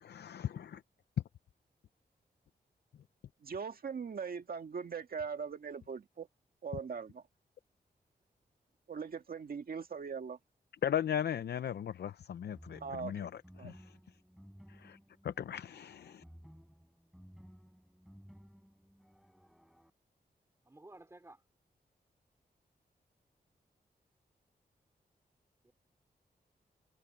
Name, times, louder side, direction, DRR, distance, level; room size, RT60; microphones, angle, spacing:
voice 1, 0.0-0.8 10.8-13.3 13.6-13.8 14.8-15.0 15.2-16.2, left 9 dB, 85° left, 0.5 m, -37 dB
voice 2, 3.4-6.3 6.6-7.2 8.9-10.4 12.8-13.3 13.6-13.7, right 6 dB, 65° right, 1.9 m, -40 dB
sound 1, 12.5-19.9, equal, ahead, 6.2 m, -57 dB
voice 3, 20.6-21.4 25.6-25.7, right 2 dB, 15° right, 3.4 m, -54 dB
wide cardioid pair, 140°, 17 cm